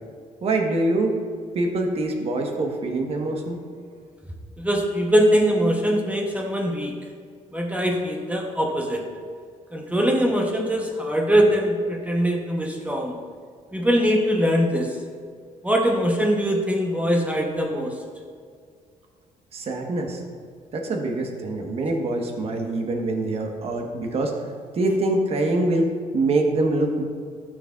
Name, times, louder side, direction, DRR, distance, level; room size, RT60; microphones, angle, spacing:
voice 1, 0.4-1.2 1.5-3.6 19.5-20.2 20.7-24.3 24.7-25.9 26.1-27.0, right 2 dB, 50° right, 2 dB, 1.2 m, -24 dB
voice 2, 4.6-6.9 7.5-9.0 9.7-13.1 13.7-14.9 15.6-17.9, equal, 10° right, 1 dB, 0.8 m, -22 dB
12.0 x 6.3 x 2.4 m, 2.1 s
cardioid pair, 115°, 13 cm